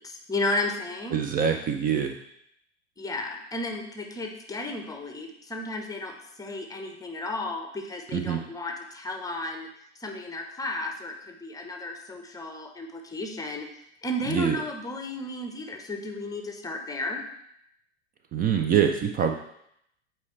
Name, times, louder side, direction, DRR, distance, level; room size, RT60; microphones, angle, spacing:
voice 1, 0.0-1.2 3.0-9.7 10.0-13.7 14.0-17.2, left 2 dB, 10° left, 4 dB, 0.9 m, -33 dB
voice 2, 1.1-2.1 8.1-8.4 14.3-14.6 18.3-19.4, right 8 dB, 25° right, 5 dB, 0.5 m, -24 dB
8.3 x 4.5 x 3.2 m, 0.75 s
hypercardioid pair, 90°, 34 cm